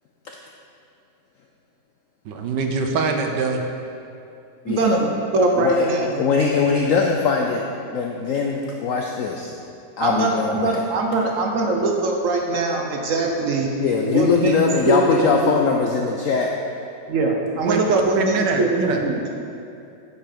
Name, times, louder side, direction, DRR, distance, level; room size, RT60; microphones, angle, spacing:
voice 1, 2.2-3.6 17.6-19.0, right 4 dB, 75° right, 4 dB, 1.3 m, -23 dB
voice 2, 4.7-5.1 5.3-6.2 10.0-13.7 14.0-15.6 17.1-19.2, right 2 dB, 55° right, 1 dB, 1.0 m, -22 dB
voice 3, 5.6-7.6 7.9-9.5 10.0-10.8 13.8-16.5, left 5 dB, 75° left, 1 dB, 0.7 m, -21 dB
8.3 x 5.6 x 5.1 m, 2.7 s
omnidirectional pair, 2.0 m